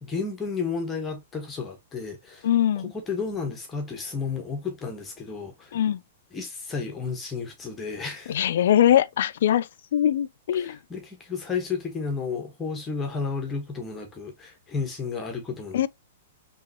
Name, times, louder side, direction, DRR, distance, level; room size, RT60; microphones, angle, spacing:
voice 1, 0.0-2.5 2.8-5.8 6.3-8.4 10.5-15.9, left 5 dB, 15° left, 1.3 m, -32 dB
voice 2, 2.4-2.9 5.7-6.0 8.3-9.7 9.9-10.8 15.7-15.9, left 11 dB, 70° left, 0.3 m, -22 dB
3.8 x 3.1 x 2.8 m
hypercardioid pair, 145°, 0 cm